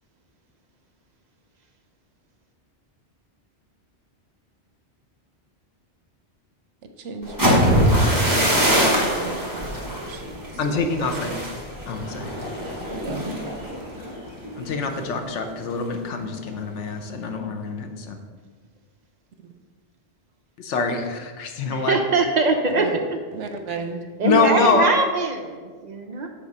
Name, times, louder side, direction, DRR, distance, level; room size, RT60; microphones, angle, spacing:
voice 1, 6.8-10.4 11.0-11.4 12.9-13.3 22.6-24.0, right 4 dB, 90° right, 6 dB, 1.0 m, -35 dB
sound 1, 7.2-15.1 15.4-15.8 16.1-16.5, equal, 20° right, 1.3 m, -23 dB
voice 2, 10.6-11.4 11.9-12.3 14.6-18.2 20.6-22.0 24.2-24.9, left 4 dB, 85° left, 6 dB, 1.1 m, -25 dB
voice 3, 21.7-22.9 24.2-26.3, right 3 dB, 45° right, 4 dB, 0.6 m, -22 dB
7.3 x 3.9 x 5.4 m, 1.5 s
omnidirectional pair, 1.2 m